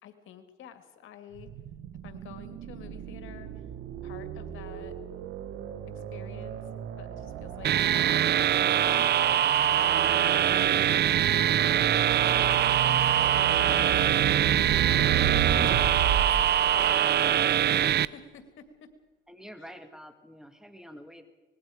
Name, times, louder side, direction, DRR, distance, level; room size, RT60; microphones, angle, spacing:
voice 1, 0.0-1.5 2.0-3.6 4.0-4.9 5.9-6.6 7.0-12.5 12.8-13.1 13.3-18.6 19.6-19.7, left 8 dB, 85° left, 8 dB, 2.1 m, -50 dB
sound 1, 1.3-17.6, right 9 dB, 85° right, 1.5 m, -33 dB
sound 2, 7.6-18.1, right 10 dB, 55° right, 0.6 m, -23 dB
voice 2, 19.3-21.2, equal, 5° right, 7 dB, 2.4 m, -47 dB
25.5 x 20.5 x 5.0 m, 1.3 s
cardioid pair, 90°, 20 cm